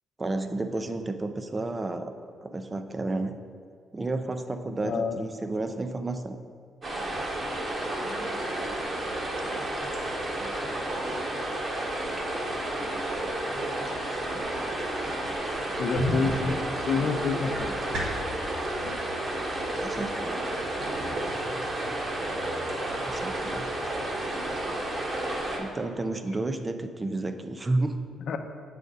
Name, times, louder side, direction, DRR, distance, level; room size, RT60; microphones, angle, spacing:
voice 1, 0.2-2.1 2.4-3.4 3.9-6.4 19.8-20.4 23.0-23.7 25.6-28.0, right 2 dB, 25° right, 8 dB, 0.5 m, -31 dB
voice 2, 4.8-5.2 13.1-13.3 15.8-17.8 24.9-25.0 25.4-25.6 28.3-28.4, left 5 dB, 65° left, 7 dB, 0.6 m, -29 dB
sound 1, 6.8-25.6, right 1 dB, 45° right, 1.3 m, -31 dB
sound 2, 15.9-18.3, equal, 85° right, 1.5 m, -33 dB
sound 3, 16.0-25.4, left 1 dB, 70° right, 1.7 m, -50 dB
8.0 x 5.0 x 4.0 m, 2.1 s
cardioid pair, 90°, 0 cm